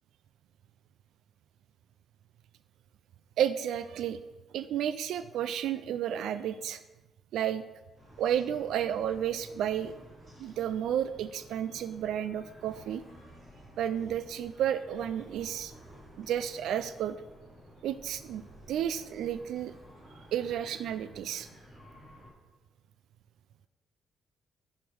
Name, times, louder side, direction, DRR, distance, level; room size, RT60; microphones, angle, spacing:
voice 1, 3.4-4.2 4.5-6.8 7.3-7.6 8.2-10.0 10.4-13.0 13.8-15.7 16.2-17.2 17.8-18.4 18.7-19.7 20.3-21.5, right 10 dB, 85° right, 12 dB, 0.3 m, -32 dB
sound 1, 7.9-22.3, equal, 20° right, 2.8 m, -53 dB
11.0 x 5.1 x 5.1 m, 1.1 s
cardioid pair, 155°, 0 cm